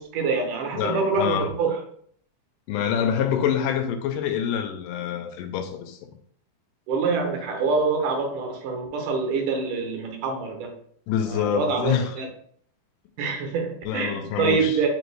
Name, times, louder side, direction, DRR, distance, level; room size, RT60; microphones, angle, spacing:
voice 1, 0.0-1.8 6.9-10.7 11.3-12.3 13.2-14.9, right 4 dB, 80° right, 2.2 m, -25 dB
voice 2, 0.7-1.5 2.7-6.0 11.1-12.2 13.9-14.8, left 8 dB, 85° left, 2.1 m, -26 dB
5.2 x 2.6 x 3.2 m
omnidirectional pair, 3.7 m